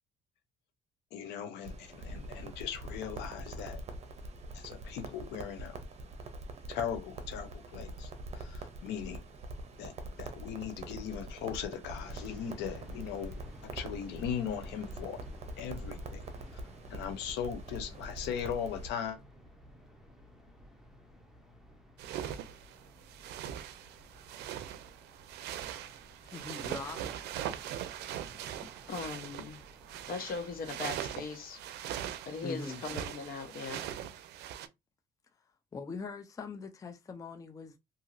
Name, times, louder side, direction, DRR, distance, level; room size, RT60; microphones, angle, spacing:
voice 1, 1.1-3.8 4.5-5.8 6.7-9.2 9.8-9.9 10.2-15.2 15.6-16.2 16.9-19.2, left 8 dB, 85° left, 0.7 m, -39 dB
Crackle, 1.6-18.9, right 1 dB, 40° right, 0.7 m, -44 dB
sound 1, 12.0-31.3, equal, ahead, 0.8 m, -55 dB
sound 2, 22.0-34.7, right 10 dB, 80° right, 0.4 m, -41 dB
voice 2, 26.2-27.0 32.4-32.8 35.7-37.8, left 4 dB, 20° left, 0.4 m, -42 dB
voice 3, 28.9-29.6 30.1-31.6 32.3-33.8, left 4 dB, 60° left, 1.0 m, -39 dB
2.8 x 2.7 x 2.6 m
cardioid pair, 110°, 17 cm